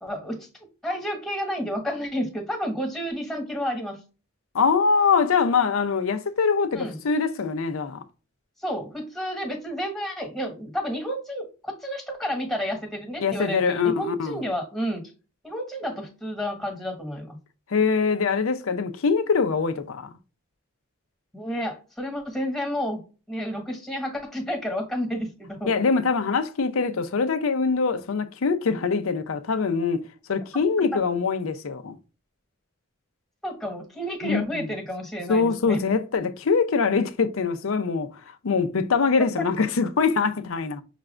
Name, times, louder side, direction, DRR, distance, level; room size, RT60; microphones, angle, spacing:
voice 1, 0.0-0.5 0.8-4.0 6.7-7.0 8.6-15.1 15.4-17.4 21.3-23.0 23.3-25.8 30.9-31.0 33.4-35.8 39.4-39.5, equal, ahead, 1.3 m, -30 dB
voice 2, 4.5-8.0 13.2-14.4 17.7-20.1 25.7-30.0 30.3-32.0 34.2-34.7 35.3-38.1 38.4-40.8, left 5 dB, 70° left, 0.6 m, -23 dB
5.8 x 2.5 x 3.2 m
head